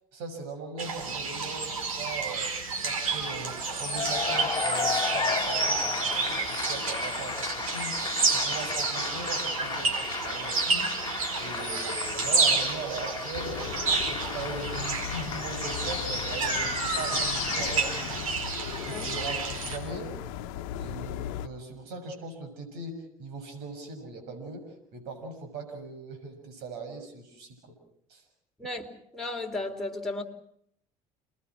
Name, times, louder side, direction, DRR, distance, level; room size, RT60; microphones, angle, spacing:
voice 1, 0.1-2.4 2.8-10.9 11.4-13.7 14.0-18.3 18.9-20.2 20.8-27.7 28.1-28.2, right 3 dB, 70° right, 6.9 m, -40 dB
sound 1, 0.8-19.8, right 4 dB, 85° right, 4.6 m, -30 dB
Cheering / Applause, 3.8-18.8, left 6 dB, 25° left, 2.0 m, -35 dB
sound 2, 13.3-21.5, left 12 dB, 70° left, 1.1 m, -36 dB
voice 2, 29.1-30.2, left 2 dB, ahead, 4.2 m, -34 dB
29.5 x 20.5 x 6.2 m
hypercardioid pair, 65°, 17 cm